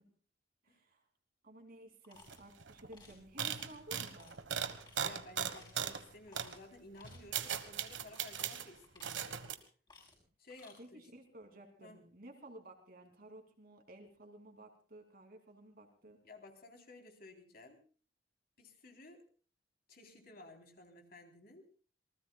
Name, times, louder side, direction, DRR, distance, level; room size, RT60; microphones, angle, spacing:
voice 1, 0.6-1.0 1.4-4.4 10.8-16.2, right 1 dB, 55° right, 4 dB, 3.0 m, -55 dB
sound 1, 2.0-2.4 2.9-3.2 3.5-3.8 4.2-4.3 4.8-5.1 5.5-5.8 6.3-6.6 6.9-7.7 8.1-8.3 8.8-9.5 9.9-10.2 10.5-10.8, left 3 dB, 25° left, 5.7 m, -60 dB
sound 2, 2.3-2.4 2.6-2.9 3.4-6.0 6.3-6.5 7.0-8.7 9.0-9.5, right 8 dB, 85° right, 1.4 m, -38 dB
voice 2, 5.0-9.4 10.4-11.1 11.8-12.0 16.0-17.8 18.6-19.2 19.9-21.6, left 2 dB, 55° left, 3 dB, 3.7 m, -55 dB
27.0 x 19.5 x 2.4 m, 0.40 s
head